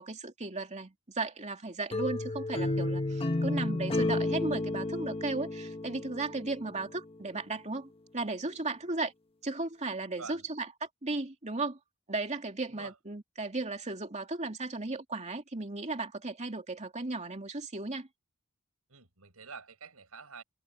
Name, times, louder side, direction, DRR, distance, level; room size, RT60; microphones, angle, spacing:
voice 1, 0.0-9.1 9.4-10.7 11.0-11.8 12.1-18.1, right 3 dB, 35° right, 2.7 m, -35 dB
sound 1, 1.9-6.8, left 2 dB, 25° left, 1.3 m, -32 dB
voice 2, 18.9-20.4, right 5 dB, 90° right, 5.2 m, -47 dB
head